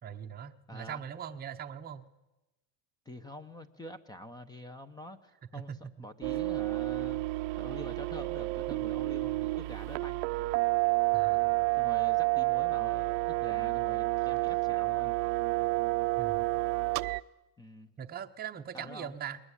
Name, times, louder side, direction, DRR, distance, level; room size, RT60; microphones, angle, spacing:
voice 1, 0.0-2.1 5.5-6.4 11.1-11.7 16.2-16.5 18.0-19.4, right 8 dB, 20° right, 5 dB, 0.9 m, -41 dB
voice 2, 0.7-1.0 3.1-7.2 7.6-10.2 11.8-15.1 17.6-17.9 18.7-19.1, left 1 dB, 10° left, 12 dB, 0.8 m, -46 dB
sound 1, 6.2-17.2, right 22 dB, 75° right, 0.8 m, -30 dB
21.5 x 20.0 x 9.9 m, 1.0 s
cardioid pair, 165°, 49 cm